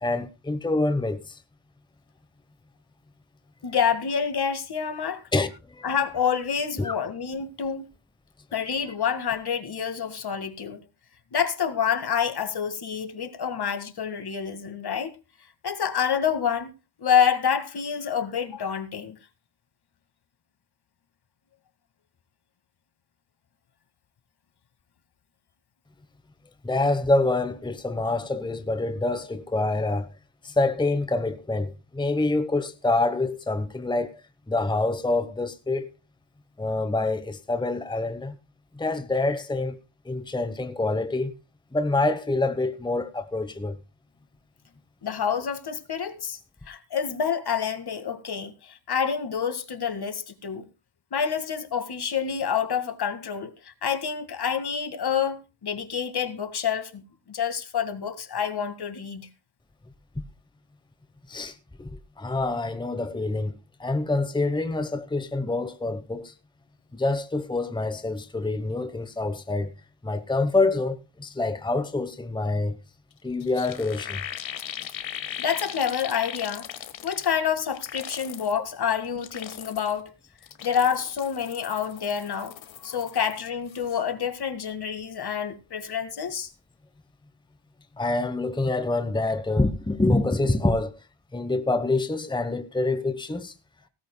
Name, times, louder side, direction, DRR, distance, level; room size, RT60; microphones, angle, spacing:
voice 1, 0.0-1.4 5.3-5.9 6.8-7.0 26.6-30.1 30.4-35.9 36.6-38.4 38.7-39.8 40.0-41.3 41.7-43.8 60.2-60.3 61.3-63.5 63.8-66.3 66.9-69.7 70.0-72.7 73.2-74.2 88.0-91.0 91.3-93.5, left 2 dB, 10° left, 1.0 m, -26 dB
voice 2, 3.6-5.2 5.8-7.9 8.5-10.8 11.3-15.1 15.6-16.7 17.0-19.2 45.0-46.4 46.7-50.7 51.1-57.0 57.3-59.3 75.4-76.7 77.0-80.1 80.6-86.5, left 7 dB, 55° left, 2.0 m, -27 dB
sound 1, 73.1-73.2 73.4-77.4 77.7-78.6 79.0-80.0 80.4-83.4 83.7-84.0, left 10 dB, 90° left, 1.6 m, -39 dB
17.5 x 14.0 x 2.3 m
cardioid pair, 85°, 45 cm